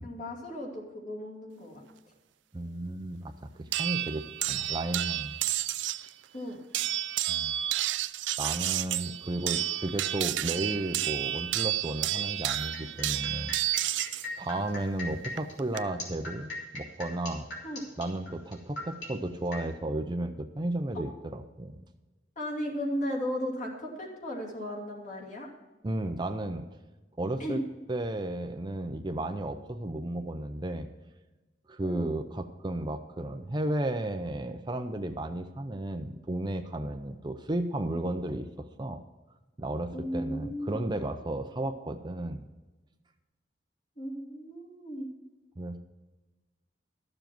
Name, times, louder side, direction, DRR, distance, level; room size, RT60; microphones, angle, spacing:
voice 1, 0.0-2.1 6.3-6.6 17.6-17.8 20.9-21.0 22.4-25.5 27.4-27.6 31.8-32.1 39.9-40.8 44.0-45.1, equal, 45° left, -1 dB, 2.6 m, -35 dB
voice 2, 2.5-3.3 3.6-5.3 7.3-7.5 7.8-8.0 8.4-13.5 14.4-17.5 18.0-21.1 21.6-21.8 25.8-26.6 27.2-27.6 27.9-30.9 31.7-39.0 39.6-42.5 45.6-45.8, right 1 dB, 25° right, 7 dB, 0.6 m, -33 dB
sound 1, 3.7-6.1 6.7-14.3 15.4-15.8, right 14 dB, 90° right, 0.4 m, -31 dB
sound 2, 12.5-19.6, left 2 dB, 75° left, 3.0 m, -39 dB
13.0 x 7.1 x 6.0 m, 1.2 s
head